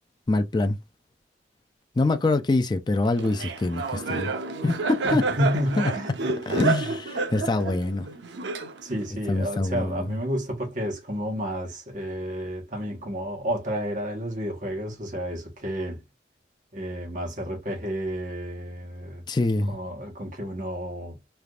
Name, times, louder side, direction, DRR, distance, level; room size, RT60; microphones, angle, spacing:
voice 1, 0.3-0.8 2.0-4.3 4.6-5.2 5.8-5.9 6.5-8.1 9.3-10.2 19.3-19.8, left 2 dB, 25° left, 0.3 m, -25 dB
Laughter, 3.2-9.1, right 4 dB, 85° right, 0.6 m, -29 dB
voice 2, 5.1-6.3 8.8-16.0 16.7-19.2 19.7-21.2, equal, 45° right, 1.1 m, -31 dB
3.3 x 2.5 x 2.3 m
head